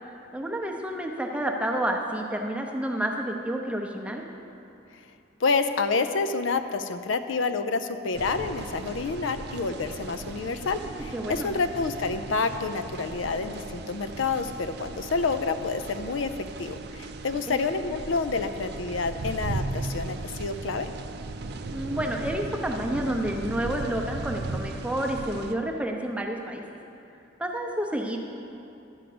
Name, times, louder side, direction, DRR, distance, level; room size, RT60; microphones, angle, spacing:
voice 1, 0.3-4.2 10.8-11.5 17.5-17.6 21.7-26.6 27.4-28.2, right 1 dB, 5° right, 1 dB, 0.7 m, -30 dB
voice 2, 5.4-16.3 16.6-20.9, left 4 dB, 70° left, 9 dB, 0.5 m, -28 dB
sound 1, 8.1-25.5, right 3 dB, 55° right, 0.5 m, -37 dB
11.5 x 5.2 x 7.7 m, 2.8 s
head